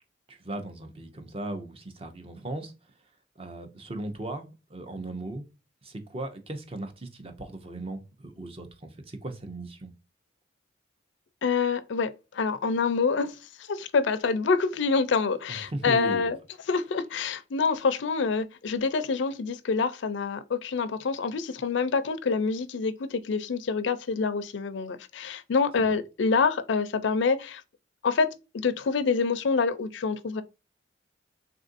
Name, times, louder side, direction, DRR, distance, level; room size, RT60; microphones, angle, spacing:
voice 1, 0.3-3.0 3.4-5.5 5.8-9.9 15.5-16.3 25.8-26.0, right 2 dB, 30° right, 0.6 m, -37 dB
voice 2, 11.4-16.4 16.7-27.6 28.0-28.3 28.5-30.4, left 5 dB, 65° left, 0.4 m, -26 dB
3.5 x 2.5 x 2.5 m
head